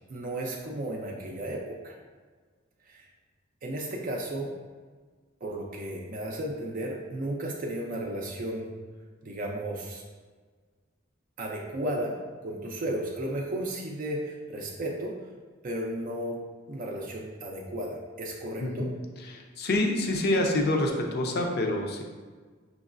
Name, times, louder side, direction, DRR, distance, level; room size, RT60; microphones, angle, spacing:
voice 1, 0.1-2.0 2.8-3.1 3.6-4.5 5.4-8.7 9.2-10.0 11.4-15.2 15.6-18.9, right 1 dB, 45° right, -1 dB, 0.4 m, -34 dB
voice 2, 18.6-22.0, left 1 dB, 55° left, 2 dB, 0.5 m, -27 dB
5.3 x 3.1 x 2.5 m, 1.5 s
head